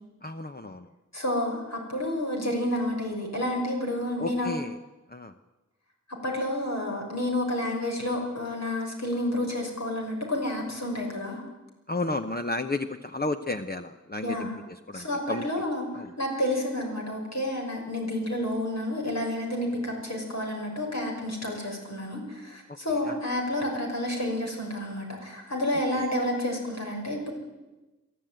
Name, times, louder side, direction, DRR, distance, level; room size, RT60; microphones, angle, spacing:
voice 1, 0.2-0.9 4.2-4.8 5.1-5.3 11.9-15.5 15.9-16.1 22.7-22.8 23.1-23.2 25.9-26.1, left 2 dB, 30° left, 7 dB, 0.9 m, -32 dB
voice 2, 1.1-4.6 6.2-11.4 14.2-14.6 14.9-27.3, left 1 dB, 60° left, 0 dB, 6.1 m, -30 dB
22.5 x 13.5 x 9.2 m, 1.1 s
wide cardioid pair, 45°, 31 cm